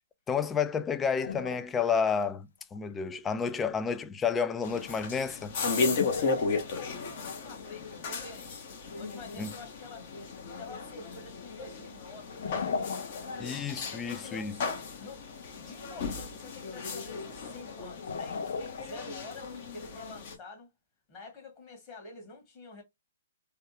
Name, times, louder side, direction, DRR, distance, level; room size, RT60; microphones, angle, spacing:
voice 1, 0.3-5.5 9.4-9.5 13.4-14.5, left 6 dB, 15° left, 0.3 m, -30 dB
sound 1, 1.2-1.9 2.2-2.3 2.8-2.9 5.8-7.1 10.6-10.7 12.2-13.6 13.9-14.0 17.9-19.3, left 5 dB, 70° left, 0.6 m, -37 dB
sound 2, 4.6-20.3, left 4 dB, 45° left, 1.0 m, -35 dB
voice 2, 5.6-10.1 10.4-13.1 13.9-15.3 15.5-18.5 18.8-20.7 21.1-22.8, left 3 dB, 30° left, 1.6 m, -48 dB
3.4 x 2.3 x 2.8 m
hypercardioid pair, 150°, 0 cm